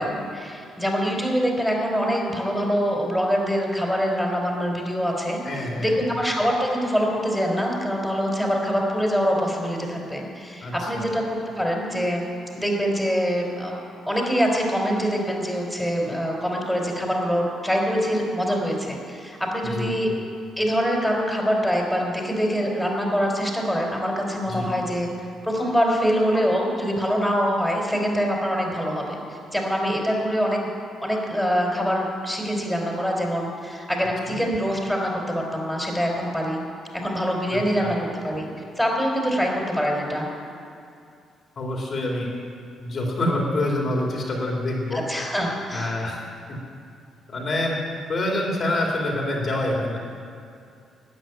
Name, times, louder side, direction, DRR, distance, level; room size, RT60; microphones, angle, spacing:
voice 1, 0.0-5.4 5.8-12.2 12.5-13.7 14.1-20.1 20.6-25.1 25.4-30.6 31.0-36.6 37.0-38.0 38.2-38.5 38.8-40.3 44.9-46.0, equal, ahead, -1 dB, 3.9 m, -24 dB
voice 2, 5.4-5.9 10.6-11.1 19.7-20.1 24.5-24.7 34.3-34.4 37.8-37.9 41.6-42.3 42.8-45.0 45.7-46.2 46.5-46.6 47.3-47.8 48.1-50.1, left 1 dB, 45° left, -2 dB, 3.1 m, -26 dB
13.0 x 9.1 x 9.2 m, 2.5 s
cardioid pair, 90°, 0 cm